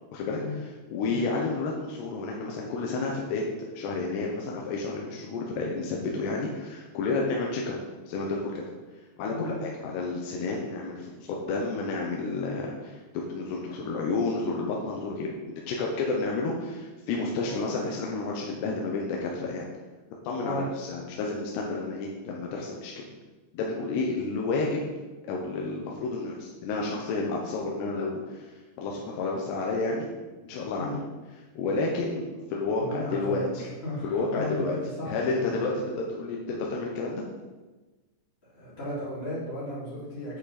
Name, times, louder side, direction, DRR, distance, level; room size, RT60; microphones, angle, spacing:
voice 1, 0.1-3.4 3.7-7.8 8.1-8.6 9.2-19.7 20.2-23.1 23.5-24.9 25.2-30.1 30.4-31.0 31.6-33.6 34.0-34.8 35.1-37.2, left 3 dB, 75° left, -1 dB, 3.0 m, -31 dB
voice 2, 9.3-9.6 17.4-17.6 20.4-20.7 30.8-31.0 32.8-35.7 38.5-40.4, left 1 dB, 20° left, -10 dB, 1.8 m, -35 dB
8.7 x 7.9 x 4.2 m, 1.2 s
omnidirectional pair, 5.1 m